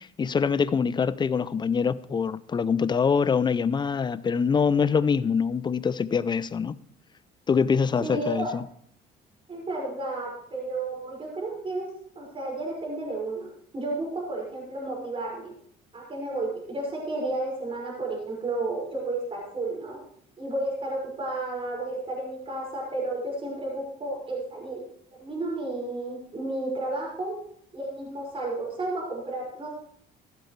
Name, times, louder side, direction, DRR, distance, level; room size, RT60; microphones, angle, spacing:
voice 1, 0.0-6.8 7.5-8.6, left 6 dB, 25° left, 0.5 m, -24 dB
voice 2, 8.0-8.5 9.5-11.9 12.2-15.5 15.9-20.0 20.4-24.8 25.2-27.3 27.7-29.7, right 2 dB, 35° right, 5.6 m, -32 dB
15.0 x 12.0 x 3.2 m
cardioid pair, 110°, 17 cm